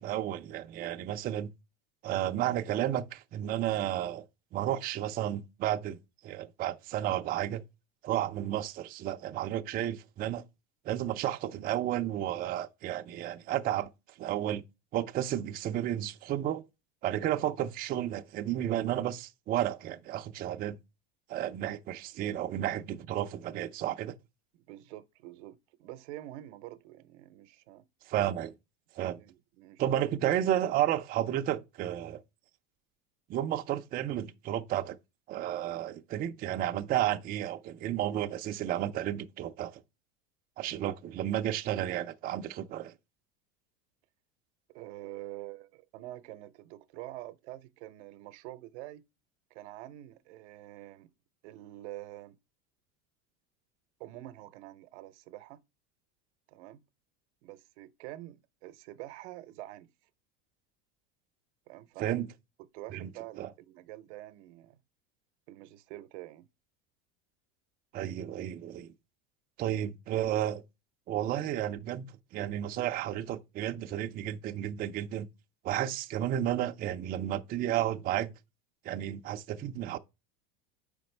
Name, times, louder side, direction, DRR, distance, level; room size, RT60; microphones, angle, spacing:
voice 1, 0.0-1.5 2.0-4.3 4.5-6.0 6.2-7.6 8.0-10.4 10.8-13.9 14.2-14.6 14.9-16.6 17.0-20.8 21.3-24.1 28.1-28.5 29.0-29.2 29.8-32.2 33.3-35.0 35.3-39.8 40.6-42.9 62.0-62.3 62.9-63.1 63.4-63.5 67.9-68.9 69.6-70.6 71.1-75.3 75.6-78.3 78.8-80.0, right 12 dB, 25° right, 0.4 m, -32 dB
voice 2, 24.5-27.8 29.2-30.2 44.7-49.0 49.5-51.1 51.4-52.4 54.0-55.6 56.5-56.8 57.4-59.9 61.7-62.2 62.7-64.8 65.5-66.4, right 16 dB, 75° right, 0.7 m, -46 dB
7.0 x 5.1 x 3.2 m
supercardioid pair, 140°, 34 cm